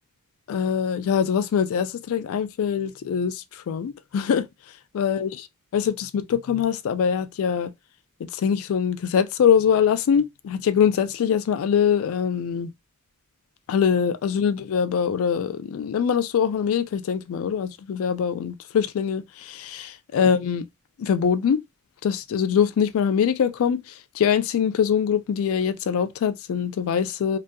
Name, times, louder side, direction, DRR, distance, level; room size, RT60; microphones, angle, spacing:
voice 1, 0.5-4.5 4.9-5.5 5.7-7.7 8.2-12.7 13.7-20.6 21.0-21.6 22.0-27.4, left 7 dB, 65° left, 0.3 m, -23 dB
2.6 x 2.4 x 2.2 m
head